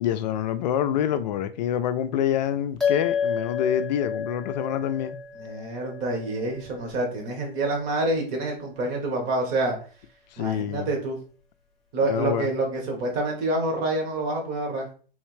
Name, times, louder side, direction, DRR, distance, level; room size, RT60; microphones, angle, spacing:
voice 1, 0.0-5.2 10.3-10.9 12.1-12.5, left 10 dB, 45° left, 0.4 m, -26 dB
sound 1, 2.8-7.5, left 7 dB, ahead, 0.7 m, -31 dB
voice 2, 5.4-9.8 10.4-11.2 11.9-14.9, right 2 dB, 35° right, 1.3 m, -27 dB
3.5 x 3.1 x 3.1 m
hypercardioid pair, 130°, 30 cm